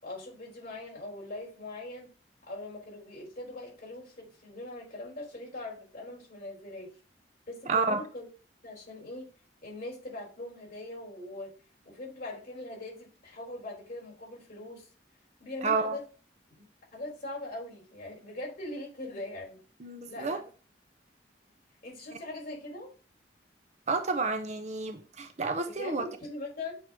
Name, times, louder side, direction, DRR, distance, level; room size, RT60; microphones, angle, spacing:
voice 1, 0.0-2.1 2.5-6.9 7.5-8.3 8.6-9.3 9.6-11.5 11.9-14.9 15.4-16.0 16.6-16.7 16.9-19.6 20.1-20.4 21.8-22.9 25.6-26.8, left 2 dB, 50° left, 3.6 m, -41 dB
voice 2, 7.7-8.0 15.6-16.0 19.8-20.4 23.9-26.0, right 4 dB, 40° right, 0.7 m, -30 dB
7.8 x 3.0 x 4.7 m
head